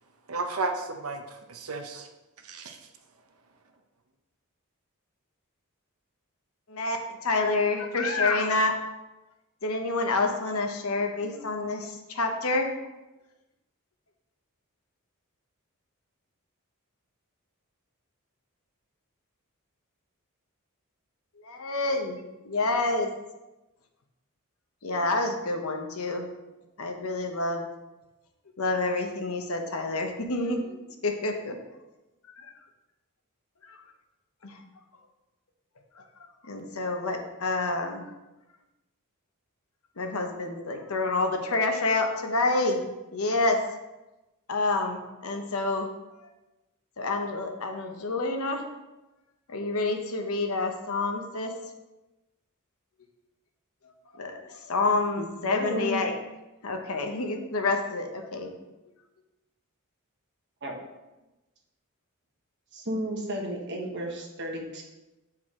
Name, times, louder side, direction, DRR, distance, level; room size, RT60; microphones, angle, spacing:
voice 1, 0.3-2.1 2.4-2.8, right 3 dB, 80° right, 5 dB, 0.8 m, -33 dB
voice 2, 7.2-8.7 9.6-12.7 21.4-22.2 22.4-23.1 24.8-26.2 26.8-27.7 28.6-30.7 31.0-31.5 34.4-34.6 36.5-38.0 40.0-42.8 43.1-43.6 44.5-45.9 47.0-48.6 49.5-51.5 54.1-54.3 54.7-56.1 56.6-58.5, left 3 dB, 75° left, 4 dB, 0.9 m, -28 dB
voice 3, 55.2-56.1 60.6-60.8 62.7-64.8, equal, 55° right, 0 dB, 1.2 m, -33 dB
7.8 x 4.7 x 3.7 m, 1.0 s
head